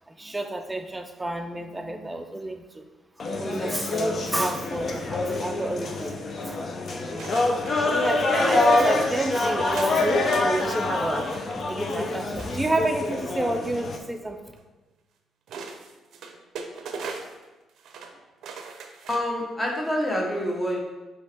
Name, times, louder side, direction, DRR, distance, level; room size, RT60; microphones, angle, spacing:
voice 1, 0.1-2.8 3.4-6.1 6.4-7.3 7.8-14.4, right 1 dB, 10° right, 6 dB, 0.4 m, -30 dB
sound 1, 3.2-14.0, left 2 dB, 45° left, 0.6 m, -26 dB
sound 2, 5.9-6.6 7.2-7.7 8.2-8.4 8.7-10.8 11.1-11.6 12.4-13.2 14.6-14.7 15.5-17.4 17.8-18.1 18.4-19.4 19.8-19.9, right 5 dB, 75° right, 0.5 m, -40 dB
voice 2, 19.1-20.8, equal, 20° left, -1 dB, 0.9 m, -27 dB
5.2 x 2.9 x 3.3 m, 1.1 s
cardioid pair, 90°, 0 cm